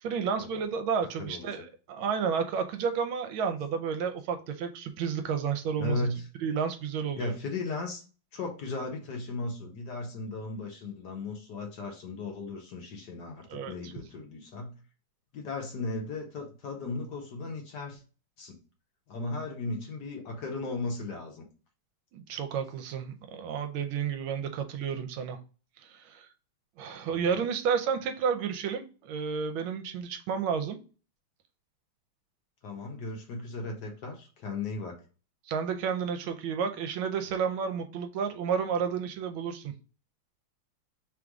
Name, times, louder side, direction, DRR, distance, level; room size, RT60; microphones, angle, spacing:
voice 1, 0.0-6.1 6.4-7.3 13.5-13.9 22.1-25.4 25.8-26.3 26.8-30.8 35.5-39.7, right 6 dB, 75° right, 7 dB, 1.4 m, -31 dB
voice 2, 1.2-1.6 5.8-6.2 7.2-8.0 8.3-14.7 15.3-18.0 18.4-18.6 19.1-21.4 27.1-27.2 32.6-35.0, left 3 dB, 60° left, 1 dB, 1.4 m, -36 dB
3.6 x 2.5 x 4.5 m, 0.36 s
omnidirectional pair, 2.3 m